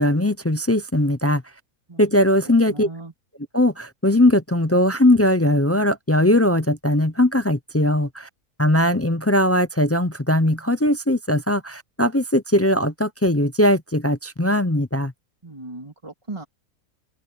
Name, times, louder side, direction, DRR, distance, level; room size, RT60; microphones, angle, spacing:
voice 1, 0.0-1.4 2.0-2.9 3.5-8.3 8.6-15.1, left 1 dB, 25° left, 0.3 m, -19 dB
voice 2, 2.7-3.1 15.4-16.4, right 2 dB, 20° right, 2.7 m, -37 dB
omnidirectional pair, 1.5 m